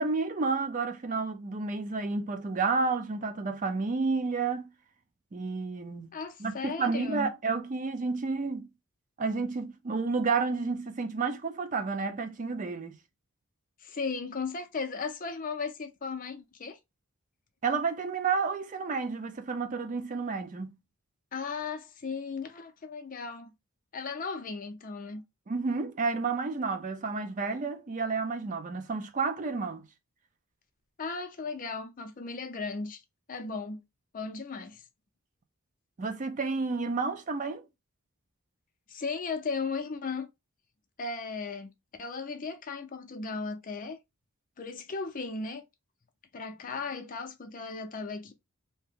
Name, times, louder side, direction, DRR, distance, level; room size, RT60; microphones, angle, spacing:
voice 1, 0.0-4.7 5.3-6.1 6.4-8.7 9.2-13.0 17.6-20.8 25.5-29.9 36.0-37.6, right 4 dB, 35° right, 0.4 m, -31 dB
voice 2, 6.1-7.3 13.8-16.8 21.3-23.5 23.9-25.2 31.0-33.0 33.3-33.8 34.1-34.8 38.9-40.3 41.0-41.7 42.0-44.0 44.6-45.6 46.3-48.3, left 4 dB, 35° left, 0.5 m, -36 dB
2.8 x 2.1 x 3.5 m
head